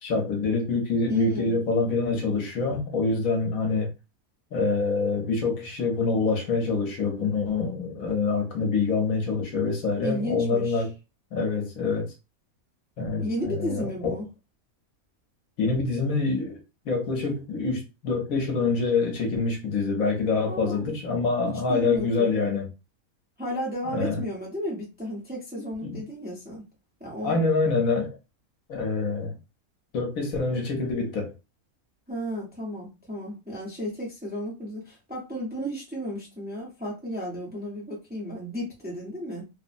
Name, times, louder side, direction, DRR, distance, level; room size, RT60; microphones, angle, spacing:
voice 1, 0.0-3.9 4.5-10.9 11.3-12.1 13.0-14.2 15.6-16.6 16.9-22.7 23.9-24.2 25.8-26.0 27.2-28.2 28.7-29.4 29.9-31.3, left 4 dB, 70° left, 1.2 m, -26 dB
voice 2, 1.1-1.6 10.0-10.8 13.2-14.3 20.5-21.0 21.7-22.4 23.4-26.6 27.0-27.4 32.1-39.4, equal, 10° right, 0.7 m, -33 dB
3.0 x 2.0 x 2.5 m
omnidirectional pair, 1.5 m